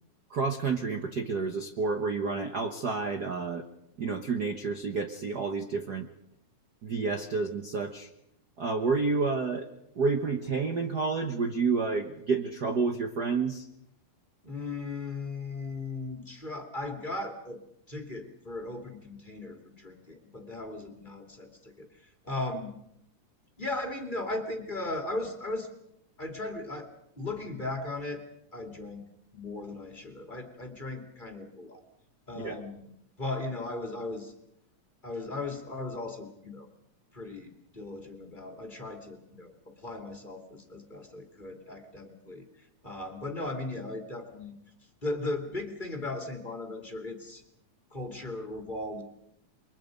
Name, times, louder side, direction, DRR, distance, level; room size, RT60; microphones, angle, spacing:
voice 1, 0.3-3.7 4.0-6.1 6.8-8.1 8.6-9.7 9.9-13.7 32.4-32.6, right 4 dB, 90° right, 6 dB, 0.8 m, -29 dB
voice 2, 14.4-17.6 17.9-22.7 23.6-25.7 26.2-26.9 27.2-28.2 28.5-29.1 29.3-31.8 32.3-32.9 33.2-34.3 35.0-36.7 37.1-44.5 45.0-47.4 47.9-49.0, left 2 dB, 15° left, 4 dB, 2.3 m, -37 dB
28.5 x 23.0 x 5.3 m, 0.77 s
omnidirectional pair, 3.7 m